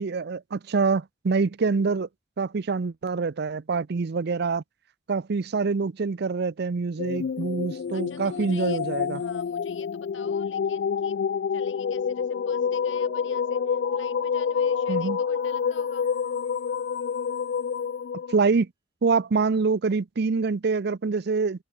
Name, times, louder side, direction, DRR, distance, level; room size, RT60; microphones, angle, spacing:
voice 1, 0.0-2.1 2.4-4.6 5.1-9.2 14.9-15.2 18.3-18.7 19.0-21.6, right 4 dB, 60° right, 0.5 m, -25 dB
sound 1, 7.0-18.4, left 6 dB, 60° left, 0.3 m, -28 dB
voice 2, 7.9-8.8 9.1-11.2 11.5-16.1, left 5 dB, 85° left, 6.8 m, -48 dB
Mallet percussion, 12.6-17.5, right 2 dB, 25° right, 5.0 m, -49 dB
head